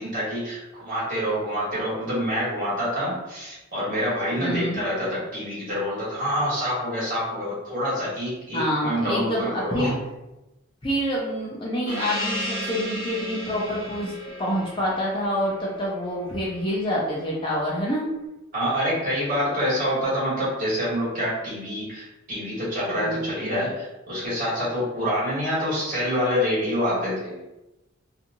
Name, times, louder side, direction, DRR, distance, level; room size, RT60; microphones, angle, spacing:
voice 1, 0.0-10.0 18.5-27.4, equal, 40° right, -9 dB, 1.3 m, -26 dB
voice 2, 4.4-4.8 8.5-9.9 10.8-14.1 14.4-18.1 22.9-23.2, equal, 25° left, -5 dB, 0.5 m, -27 dB
Gong, 11.9-16.9, left 1 dB, 20° right, 1.5 m, -34 dB
2.8 x 2.5 x 2.6 m, 0.99 s
head